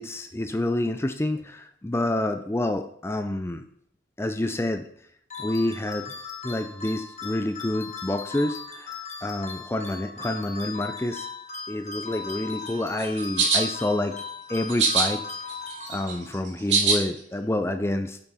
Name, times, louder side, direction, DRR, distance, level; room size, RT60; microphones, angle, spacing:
voice 1, 0.0-3.6 4.2-4.9 5.4-6.1 6.4-11.3 11.7-14.2 14.5-15.2 15.9-18.2, left 1 dB, 15° left, 7 dB, 0.4 m, -28 dB
sound 1, 5.3-16.5, left 5 dB, 35° left, 1.1 m, -38 dB
sound 2, 13.0-13.6 14.7-15.1 15.5-17.0, right 4 dB, 70° right, 2.1 m, -22 dB
9.0 x 5.7 x 4.2 m, 0.66 s
head